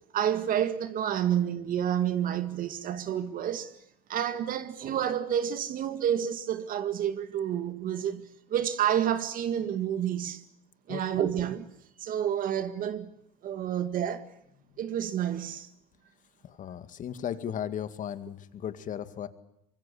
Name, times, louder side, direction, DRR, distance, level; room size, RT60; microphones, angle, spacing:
voice 1, 0.0-3.7 4.1-10.4 10.9-11.7 12.0-13.1 13.4-14.3 14.8-15.7, right 10 dB, 50° right, 2.0 m, -29 dB
voice 2, 16.4-19.3, left 9 dB, 45° left, 2.1 m, -36 dB
25.0 x 23.0 x 8.6 m
supercardioid pair, 95°, 18 cm